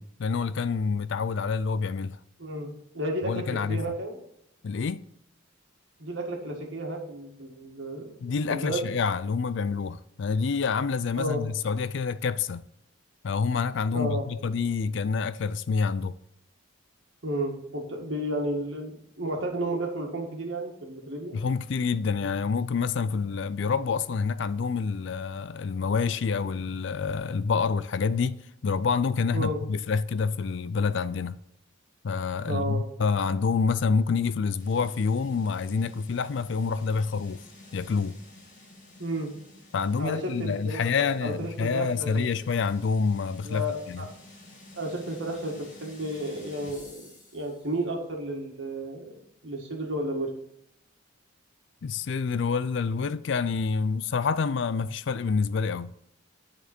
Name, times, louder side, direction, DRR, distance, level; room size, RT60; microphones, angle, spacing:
voice 1, 0.0-2.2 3.3-3.8 4.6-5.0 8.2-12.6 13.2-16.2 21.3-31.4 32.0-37.4 37.7-38.2 39.7-44.0 51.8-55.9, left 5 dB, 60° left, 0.4 m, -27 dB
voice 2, 2.4-4.2 6.0-8.1 8.5-8.9 11.2-11.4 13.9-14.2 17.2-21.4 29.3-29.6 32.5-32.8 39.0-39.3 40.0-42.3 43.4-44.1 44.7-49.1 49.4-50.3, right 1 dB, 65° right, 1.8 m, -32 dB
sound 1, 34.6-47.8, left 2 dB, 40° left, 2.0 m, -51 dB
9.7 x 4.2 x 4.4 m
head